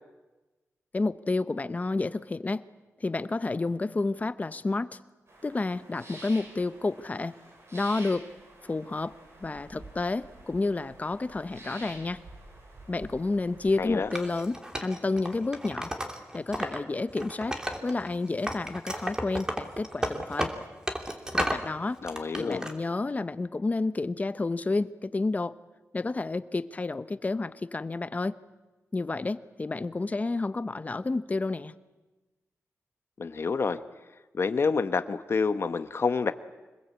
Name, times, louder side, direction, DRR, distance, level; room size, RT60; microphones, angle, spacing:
voice 1, 0.9-2.6 3.0-5.0 5.4-7.3 7.7-8.3 8.7-12.2 12.9-15.9 16.3-20.5 21.3-22.0 22.4-25.6 25.9-28.4 28.9-31.7, left 3 dB, 30° left, 13 dB, 1.0 m, -30 dB
sound 1, 5.3-14.0, right 2 dB, 55° right, 7.8 m, -49 dB
voice 2, 13.8-14.1 22.0-22.6 33.2-33.8 34.3-36.3, left 5 dB, 50° left, 10 dB, 1.2 m, -28 dB
Wood, 14.1-16.8 17.1-18.1 18.4-21.7 22.0-22.7, equal, 15° right, 2.9 m, -33 dB
26.5 x 21.0 x 8.4 m, 1.2 s
wide cardioid pair, 105°, 5 cm